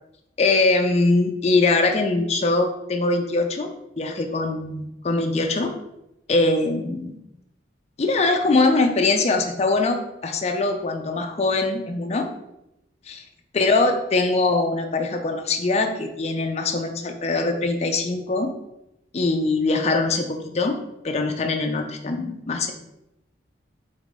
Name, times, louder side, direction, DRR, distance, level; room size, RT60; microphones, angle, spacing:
voice 1, 0.4-3.7 4.0-5.7 6.3-7.2 8.0-12.3 13.1-13.2 13.5-18.5 19.1-20.8 21.0-22.7, left 3 dB, 35° left, 5 dB, 0.4 m, -22 dB
3.8 x 3.5 x 3.6 m, 0.86 s
head